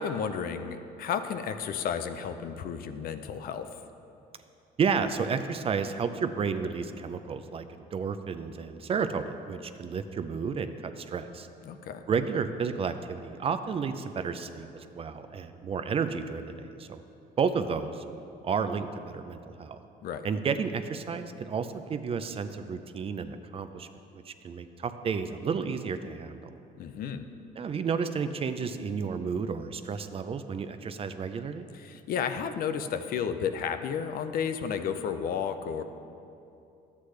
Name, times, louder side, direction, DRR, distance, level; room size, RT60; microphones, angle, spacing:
voice 1, 0.0-3.8 11.6-12.0 20.0-20.3 26.8-27.3 31.7-35.8, left 7 dB, 60° left, 9 dB, 0.5 m, -32 dB
voice 2, 4.8-11.5 12.1-17.0 17.4-18.0 18.4-19.8 20.2-23.9 24.3-26.4 27.6-31.7, right 6 dB, 35° right, 10 dB, 0.4 m, -31 dB
11.5 x 8.3 x 3.2 m, 2.7 s
cardioid pair, 110°, 17 cm